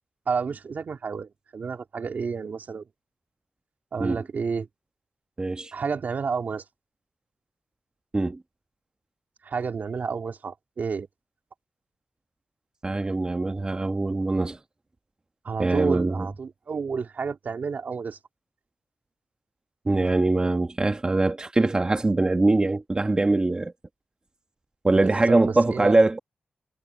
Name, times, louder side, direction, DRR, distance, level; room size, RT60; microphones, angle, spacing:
voice 1, 0.3-2.8 3.9-4.7 5.7-6.6 9.4-11.1 15.4-18.2 24.9-26.0, right 5 dB, 65° right, 2.5 m, -30 dB
voice 2, 5.4-5.7 8.1-8.4 12.8-14.6 15.6-16.3 19.8-23.7 24.8-26.2, right 2 dB, 25° right, 1.2 m, -22 dB
wide cardioid pair, 105°, 3 cm